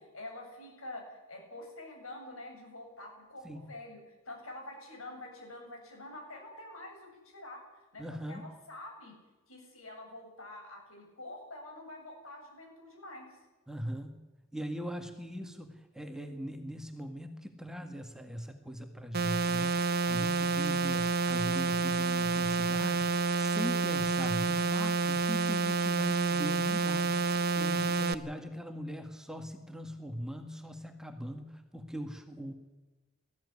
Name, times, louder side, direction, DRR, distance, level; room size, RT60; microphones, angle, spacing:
voice 1, 0.0-7.6 7.9-9.2 9.5-13.4, left 1 dB, 85° left, 2 dB, 7.6 m, -47 dB
voice 2, 8.0-8.5 13.7-14.1 14.5-27.2 27.6-32.5, equal, 5° right, 5 dB, 1.9 m, -40 dB
sound 1, 19.1-28.1, right 4 dB, 50° right, 1.0 m, -29 dB
19.5 x 14.5 x 9.8 m, 1.2 s
head